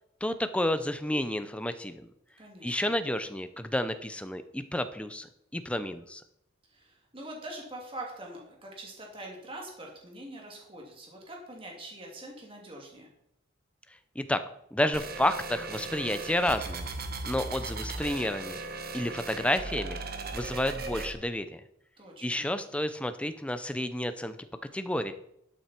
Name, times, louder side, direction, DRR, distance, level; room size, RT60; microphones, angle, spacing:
voice 1, 0.2-2.1 2.6-6.2 14.2-14.4 14.7-16.9 17.3-18.6 18.9-20.0 20.3-21.6 22.2-24.4 24.7-25.1, left 1 dB, 5° left, 10 dB, 0.6 m, -30 dB
voice 2, 2.4-2.9 6.7-13.1 22.0-22.4, right 1 dB, 25° right, -1 dB, 2.7 m, -44 dB
sound 1, 14.9-21.1, right 3 dB, 45° right, 1.1 m, -37 dB
12.0 x 8.3 x 4.4 m, 0.77 s
head